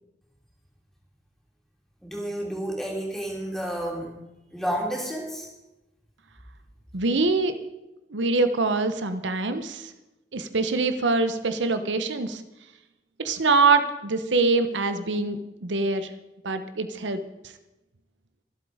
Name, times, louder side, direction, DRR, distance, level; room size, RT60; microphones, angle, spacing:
voice 1, 2.0-4.1 4.5-5.5, right 1 dB, ahead, -2 dB, 3.4 m, -30 dB
voice 2, 6.9-7.6 8.1-9.9 10.3-12.4 13.2-16.1 16.4-17.2, right 3 dB, 80° right, 9 dB, 1.0 m, -24 dB
24.0 x 8.1 x 5.0 m, 0.97 s
head